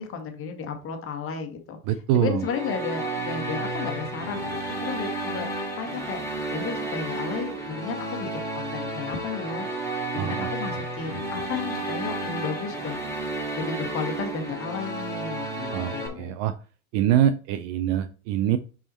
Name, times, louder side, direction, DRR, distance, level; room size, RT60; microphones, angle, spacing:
voice 1, 0.0-1.8 2.2-5.5 5.8-9.7 10.1-13.1 13.5-16.3, left 6 dB, 30° left, 5 dB, 1.5 m, -33 dB
voice 2, 1.8-2.5 10.2-10.8 11.1-11.2 15.7-16.6 16.9-18.6, right 11 dB, 35° right, 11 dB, 0.4 m, -25 dB
sound 1, 2.4-16.1, right 2 dB, 5° left, 2.5 m, -32 dB
5.6 x 4.9 x 4.2 m, 0.37 s
hypercardioid pair, 115°, 44 cm